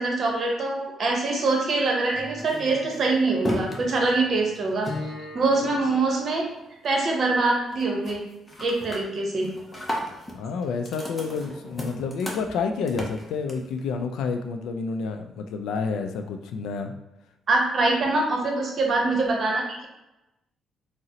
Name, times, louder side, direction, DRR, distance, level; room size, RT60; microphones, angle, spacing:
voice 1, 0.0-6.4 6.8-8.2 8.6-9.5 17.5-19.9, right 3 dB, 50° right, 0 dB, 0.8 m, -24 dB
sound 1, 2.1-6.6 7.0-7.4 7.7-8.2 8.5-13.8, left 1 dB, 20° left, 0.6 m, -36 dB
voice 2, 10.3-16.9, left 5 dB, 85° left, 6 dB, 0.3 m, -29 dB
3.7 x 2.0 x 2.7 m, 0.96 s
cardioid pair, 90°, 0 cm